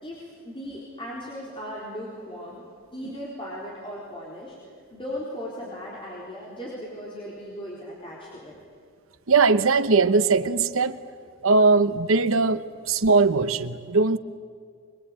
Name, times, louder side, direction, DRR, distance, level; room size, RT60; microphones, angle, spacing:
voice 1, 0.0-2.6 2.9-8.5, equal, 25° left, -5 dB, 4.2 m, -37 dB
voice 2, 9.3-11.0 11.4-14.2, right 4 dB, 70° right, 12 dB, 1.0 m, -20 dB
24.5 x 21.5 x 9.0 m, 2.1 s
head